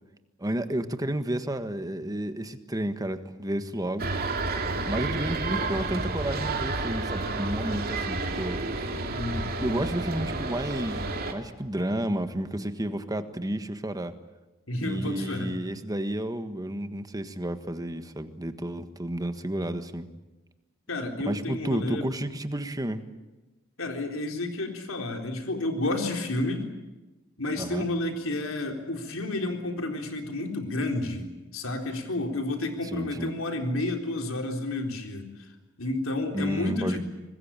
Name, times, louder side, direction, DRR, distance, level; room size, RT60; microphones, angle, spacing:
voice 1, 0.4-4.1 4.9-8.6 9.6-14.2 14.8-20.1 21.2-23.0 27.6-27.9 32.9-33.3 36.3-37.0, right 1 dB, 20° right, 9 dB, 1.5 m, -31 dB
sound 1, 4.0-11.3, right 3 dB, 45° right, 2.7 m, -30 dB
voice 2, 9.1-9.8 14.7-15.5 20.9-22.1 23.8-26.7 27.4-35.3 35.8-37.0, left 2 dB, 70° left, 4 dB, 3.9 m, -31 dB
25.0 x 20.5 x 9.0 m, 1.1 s
head